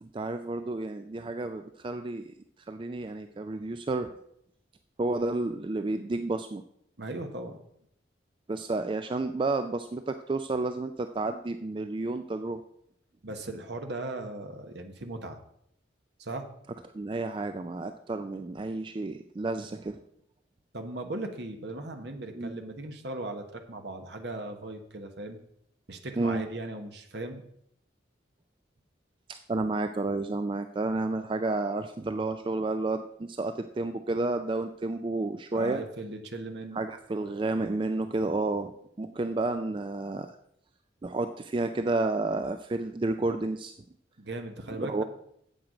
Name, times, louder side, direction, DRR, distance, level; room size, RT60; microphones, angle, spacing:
voice 1, 0.0-2.3 2.7-4.1 5.0-6.6 8.5-12.6 16.9-20.0 22.3-22.5 26.2-26.4 29.3-35.8 36.7-40.3 41.0-43.7 44.8-45.0, right 2 dB, 25° right, 8 dB, 0.3 m, -31 dB
voice 2, 7.0-7.6 13.2-15.4 16.2-16.5 20.7-25.4 25.9-27.4 35.5-36.8 44.2-45.0, right 2 dB, 60° right, 5 dB, 1.2 m, -38 dB
8.9 x 7.7 x 5.0 m, 0.71 s
head